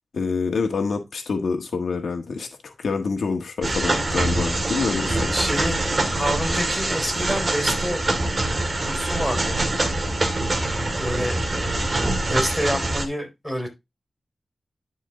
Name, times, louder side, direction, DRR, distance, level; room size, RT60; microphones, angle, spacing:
voice 1, 0.1-5.3, left 4 dB, 80° left, 1.5 m, -26 dB
sound 1, 3.6-13.1, right 2 dB, 35° right, 1.9 m, -24 dB
voice 2, 5.3-8.0 8.8-9.8 11.0-13.7, equal, ahead, 4.5 m, -28 dB
11.0 x 4.6 x 3.7 m
wide cardioid pair, 130°, 0 cm